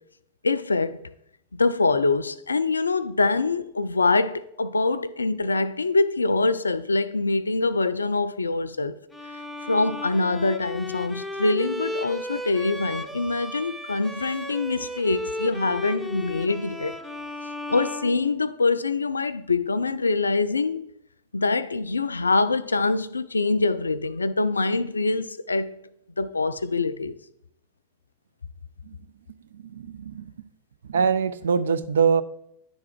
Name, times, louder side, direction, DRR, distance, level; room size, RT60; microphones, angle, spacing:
voice 1, 0.4-1.0 1.5-9.0 9.6-16.9 17.7-20.9 21.3-25.8 26.2-27.1, left 3 dB, 75° left, 0.3 m, -24 dB
Bowed string instrument, 9.1-18.8, left 1 dB, 5° left, 0.6 m, -35 dB
voice 2, 29.5-30.3 30.9-32.2, right 6 dB, 65° right, 0.4 m, -23 dB
10.0 x 3.6 x 4.4 m
figure-of-eight pair, 90°, 0 cm